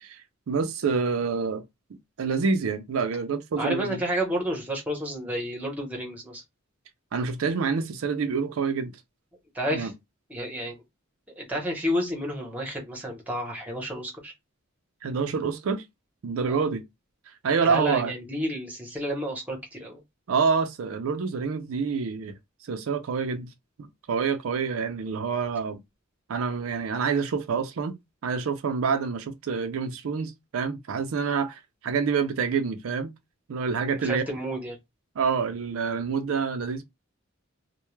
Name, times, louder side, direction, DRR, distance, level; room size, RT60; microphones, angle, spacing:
voice 1, 0.5-1.6 2.2-4.0 7.1-9.0 9.7-9.9 15.0-15.8 16.2-16.8 17.4-18.1 20.3-22.4 22.7-23.5 23.8-25.8 26.3-28.0 28.2-33.1 33.5-34.2 35.2-36.8, right 5 dB, 85° right, 0.4 m, -27 dB
voice 2, 3.6-6.4 9.5-9.9 10.3-10.8 11.4-14.3 16.4-16.7 17.6-20.0 33.9-34.8, equal, 5° right, 0.8 m, -30 dB
2.2 x 2.1 x 3.0 m
head